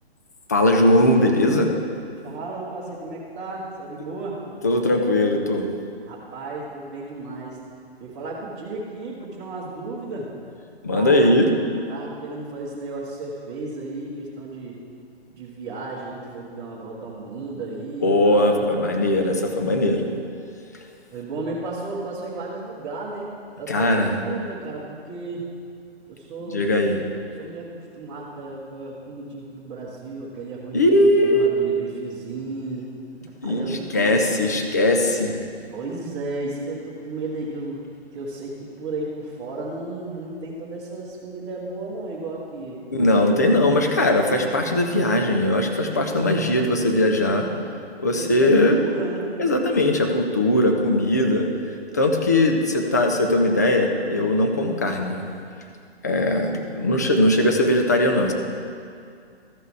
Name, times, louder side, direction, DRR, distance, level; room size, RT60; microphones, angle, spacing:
voice 1, 0.5-1.7 4.6-5.7 10.8-11.5 18.0-20.1 23.7-24.1 26.5-27.0 30.7-31.8 33.4-35.4 42.9-47.5 48.0-48.8 49.4-55.2 56.0-58.3, left 1 dB, 15° left, 3 dB, 0.3 m, -20 dB
voice 2, 2.2-4.4 6.0-7.6 8.0-10.3 10.9-11.2 11.9-14.7 15.3-18.6 21.1-23.3 23.6-25.5 26.1-27.0 27.4-32.9 33.2-34.5 35.7-37.8 38.1-42.8 48.1-49.4, right 2 dB, 25° right, -9 dB, 1.5 m, -34 dB
14.0 x 5.5 x 4.7 m, 2.3 s
figure-of-eight pair, 135°, 33 cm